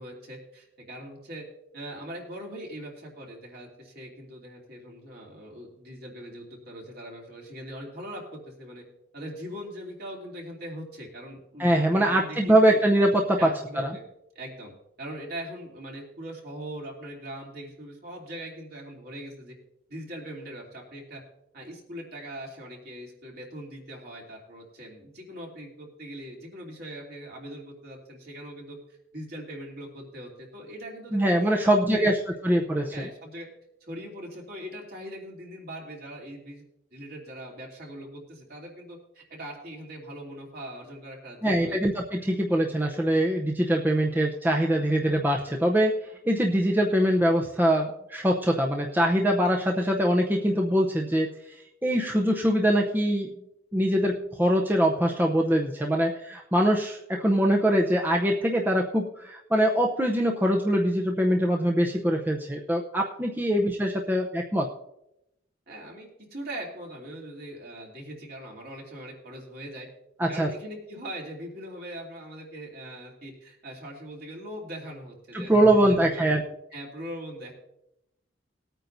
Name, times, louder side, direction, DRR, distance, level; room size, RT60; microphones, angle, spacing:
voice 1, 0.0-1.4 1.7-8.8 9.1-12.8 13.4-14.0 14.3-14.7 15.0-19.5 19.9-21.2 21.5-28.8 29.1-32.1 32.9-33.5 33.8-36.6 36.9-41.8 65.7-69.9 70.3-76.3 76.7-77.5, right 1 dB, 55° right, -2 dB, 2.9 m, -41 dB
voice 2, 11.6-13.9 31.1-33.1 41.4-45.9 46.3-51.3 51.8-53.3 53.7-64.7 70.2-70.5 75.3-76.4, right 1 dB, 10° right, 0 dB, 0.7 m, -23 dB
20.0 x 9.0 x 2.7 m, 0.84 s
head